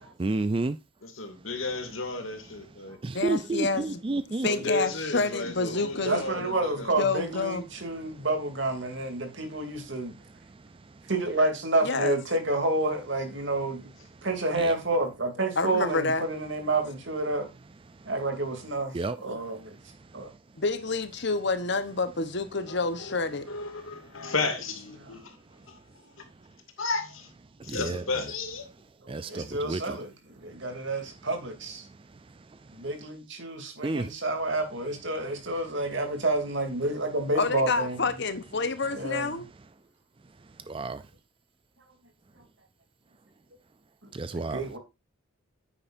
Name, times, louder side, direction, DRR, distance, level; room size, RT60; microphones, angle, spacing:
voice 1, 0.2-0.8 3.0-4.5 14.6-14.8 18.9-19.2 27.7-28.2 29.1-30.0 33.8-34.1 40.7-41.0 44.2-44.6, right 2 dB, 25° right, 0.4 m, -30 dB
voice 2, 1.0-3.0 4.5-7.0 22.7-23.2 23.5-25.4 25.7-25.8 26.8-27.3 27.6-28.7, left 3 dB, 75° left, 2.5 m, -33 dB
voice 3, 3.1-4.0 4.4-6.2 7.0-7.6 11.8-12.2 15.6-16.2 20.6-23.5 37.3-39.5, left 3 dB, 55° left, 1.1 m, -28 dB
voice 4, 6.0-10.1 11.1-13.9 14.2-17.5 18.0-19.0 19.2-19.7 20.1-20.3 24.2-24.3 29.0-31.9 32.7-38.0 38.9-39.4 44.3-44.8, right 2 dB, 60° right, 3.0 m, -29 dB
9.9 x 8.9 x 2.6 m
head